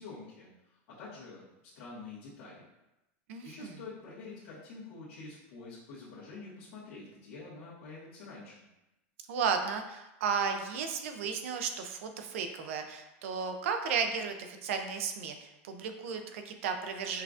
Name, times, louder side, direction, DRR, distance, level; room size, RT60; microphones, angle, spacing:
voice 1, 0.0-1.5 1.7-2.6 3.4-8.6, left 3 dB, 70° left, -10 dB, 1.2 m, -47 dB
voice 2, 3.3-3.8 9.3-17.2, right 6 dB, 80° right, 6 dB, 0.5 m, -34 dB
5.4 x 2.5 x 2.4 m, 0.95 s
supercardioid pair, 165°, 7 cm